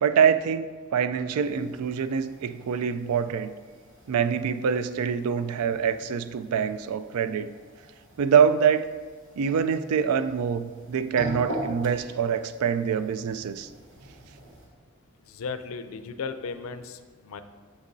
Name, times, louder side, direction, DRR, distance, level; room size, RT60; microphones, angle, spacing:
voice 1, 0.0-3.5 4.1-7.5 8.2-8.9 9.4-13.7, right 7 dB, 85° right, 13 dB, 0.3 m, -25 dB
sound 1, 1.4-14.7, right 1 dB, 55° right, 1.1 m, -43 dB
voice 2, 15.2-17.4, left 5 dB, 70° left, 10 dB, 0.4 m, -36 dB
8.1 x 6.3 x 2.6 m, 1.5 s
head